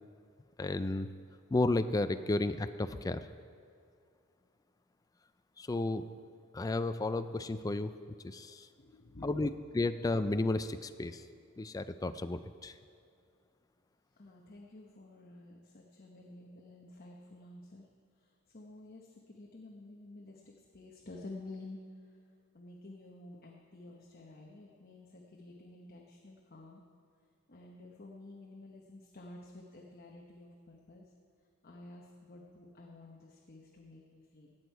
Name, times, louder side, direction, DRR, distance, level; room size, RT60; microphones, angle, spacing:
voice 1, 0.6-1.1 1.5-3.3 5.6-6.1 6.5-7.9 8.2-8.7 9.2-11.2 11.6-12.8, left 2 dB, 15° left, 11 dB, 0.3 m, -33 dB
voice 2, 8.8-9.4 14.2-17.9 18.2-21.8 22.5-26.8 27.5-31.1 31.6-34.6, left 2 dB, 45° left, -1 dB, 1.0 m, -51 dB
17.5 x 8.1 x 4.6 m, 2.2 s
head